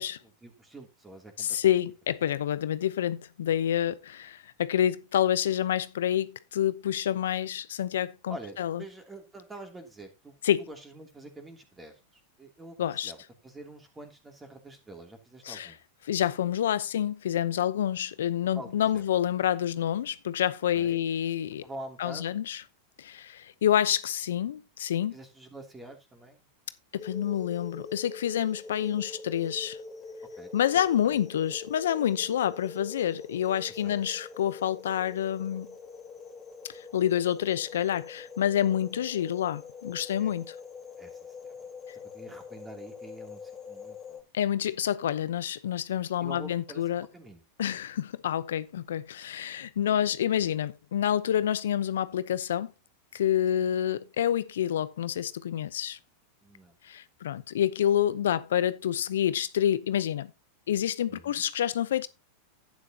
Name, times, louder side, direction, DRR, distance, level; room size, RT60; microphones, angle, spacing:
voice 1, 0.0-1.8 3.8-3.9 8.3-10.3 10.7-13.2 13.4-15.8 18.5-19.0 20.7-21.0 21.6-22.4 25.1-26.5 30.4-30.5 31.0-31.4 33.7-34.0 40.2-40.3 41.0-41.5 42.1-44.2 46.2-47.4 53.5-53.7 56.4-56.8 61.1-61.4, right 2 dB, 15° right, 2.8 m, -46 dB
voice 2, 1.4-8.8 10.4-10.6 12.8-13.1 15.5-15.7 16.1-21.7 22.0-22.6 23.0-25.1 26.9-29.8 30.5-35.7 36.6-40.6 44.3-47.1 47.6-52.7 53.1-56.0 56.8-60.3 60.7-62.1, left 10 dB, 80° left, 0.7 m, -28 dB
sound 1, 27.0-44.2, left 4 dB, 15° left, 3.2 m, -45 dB
11.5 x 9.1 x 2.8 m
hypercardioid pair, 115°, 0 cm